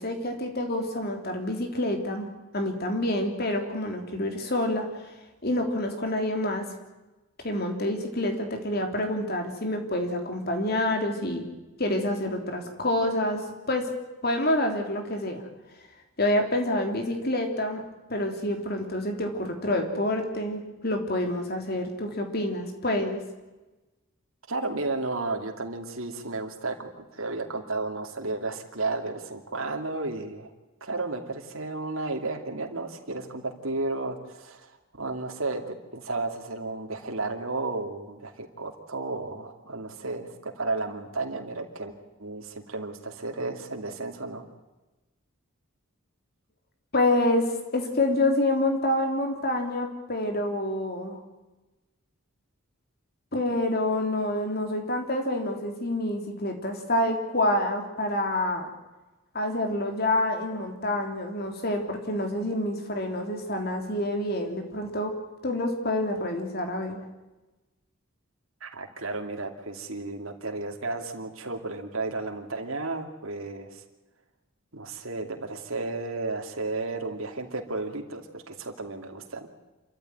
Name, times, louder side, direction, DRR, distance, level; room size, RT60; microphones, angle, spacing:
voice 1, 0.0-2.3 2.5-4.9 5.4-6.7 7.4-11.4 11.8-13.9 14.2-15.4 16.2-17.8 18.1-23.2 46.9-51.2 53.3-58.7 59.3-65.1 65.4-67.0, left 1 dB, 45° left, 4 dB, 3.4 m, -27 dB
voice 2, 24.5-30.5 30.8-34.7 35.0-41.9 42.2-44.4 68.6-73.8 74.7-79.5, right 3 dB, 70° right, 3 dB, 2.7 m, -33 dB
27.5 x 14.0 x 9.2 m, 1.1 s
head